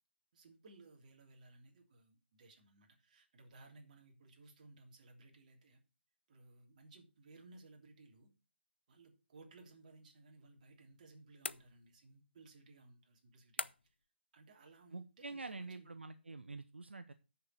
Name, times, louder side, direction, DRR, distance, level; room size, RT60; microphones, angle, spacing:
voice 1, 0.3-5.8 6.3-8.3 8.9-13.7 14.3-15.9, right 2 dB, 40° right, 2 dB, 3.0 m, -60 dB
sound 1, 11.4-12.2 13.6-14.1, left 3 dB, 75° left, 0.6 m, -44 dB
voice 2, 14.9-17.1, right 3 dB, 75° right, 11 dB, 0.7 m, -47 dB
8.0 x 6.7 x 6.5 m, 0.31 s
figure-of-eight pair, 140°, 6 cm